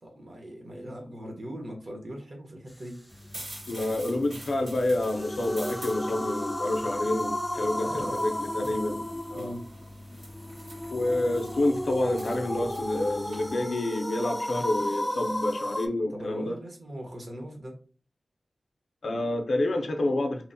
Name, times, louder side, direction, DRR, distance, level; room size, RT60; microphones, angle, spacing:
voice 1, 0.2-3.0 7.7-8.3 9.3-9.7 16.1-17.7, equal, 55° right, 1 dB, 0.8 m, -40 dB
sound 1, 3.1-13.5, equal, 90° right, 1.4 m, -45 dB
voice 2, 3.7-9.5 10.9-16.6 19.0-20.5, left 2 dB, 70° left, 4 dB, 0.4 m, -28 dB
sound 2, 4.8-15.9, left 1 dB, 5° left, 0.3 m, -33 dB
2.8 x 2.0 x 2.6 m, 0.40 s
wide cardioid pair, 110°, 0 cm